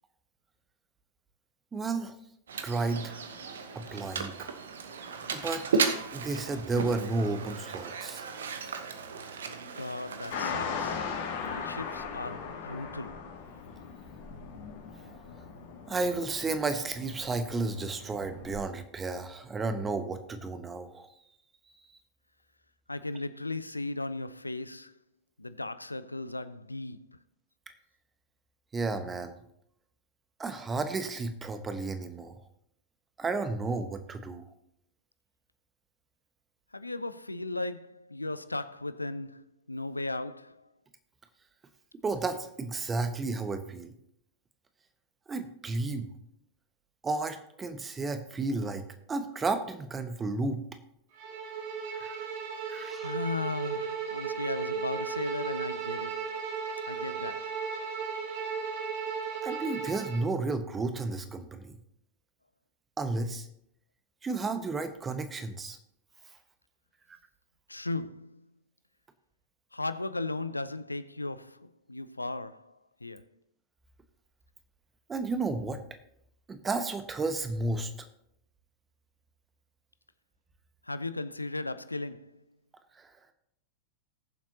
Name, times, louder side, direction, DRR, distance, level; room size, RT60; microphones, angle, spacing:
voice 1, 1.7-2.1 2.6-3.2 3.7-4.5 5.3-5.6 6.1-8.2 15.9-21.1 28.7-29.3 30.4-32.4 33.2-34.4 42.0-43.9 45.3-46.1 47.0-48.8 49.1-50.6 51.9-52.2 52.7-53.1 59.4-61.8 63.0-63.5 64.2-65.8 75.1-75.8 76.5-78.1 83.0-83.1, right 3 dB, 15° right, 1.1 m, -32 dB
Mechanisms, 2.5-10.5, right 5 dB, 65° right, 1.0 m, -35 dB
voice 2, 9.6-11.1 11.4-13.3 22.9-25.0 25.4-27.2 36.7-40.7 53.0-56.4 56.9-57.6 67.7-68.5 69.7-73.3 80.8-82.4, left 2 dB, 85° left, 0.4 m, -37 dB
sound 1, 10.3-18.6, left 6 dB, 55° left, 2.1 m, -39 dB
Bowed string instrument, 51.2-60.3, right 6 dB, 50° right, 1.7 m, -35 dB
19.5 x 7.4 x 2.8 m
figure-of-eight pair, 90°, 0 cm